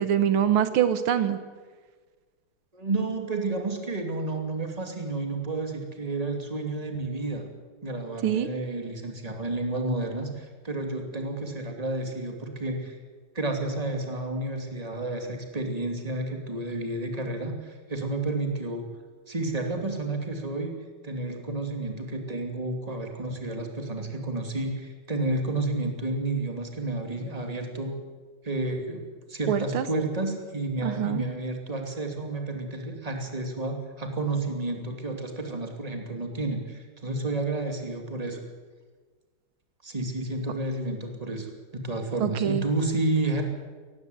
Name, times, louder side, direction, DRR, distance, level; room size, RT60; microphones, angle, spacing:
voice 1, 0.0-1.4 8.2-8.5 29.5-29.9 30.8-31.2 42.2-42.6, right 9 dB, 80° right, 12 dB, 1.9 m, -24 dB
voice 2, 2.7-7.5 7.8-13.0 13.3-18.8 19.3-20.7 21.0-28.0 28.4-29.0 29.3-38.4 39.8-41.5 41.7-43.4, right 2 dB, 15° right, 4 dB, 2.6 m, -31 dB
18.0 x 16.0 x 9.4 m, 1.4 s
omnidirectional pair, 2.3 m